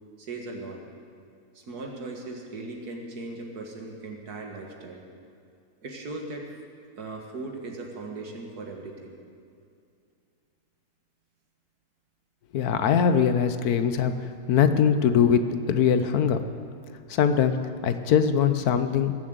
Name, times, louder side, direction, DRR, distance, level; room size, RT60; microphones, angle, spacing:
voice 1, 0.2-0.8 1.5-5.0 5.8-6.5 6.9-9.2, right 2 dB, 75° right, 1 dB, 2.2 m, -38 dB
voice 2, 12.5-14.1 14.5-16.4 17.1-17.6 17.8-19.2, left 7 dB, 75° left, 9 dB, 1.3 m, -22 dB
18.0 x 7.5 x 7.9 m, 2.4 s
omnidirectional pair, 1.7 m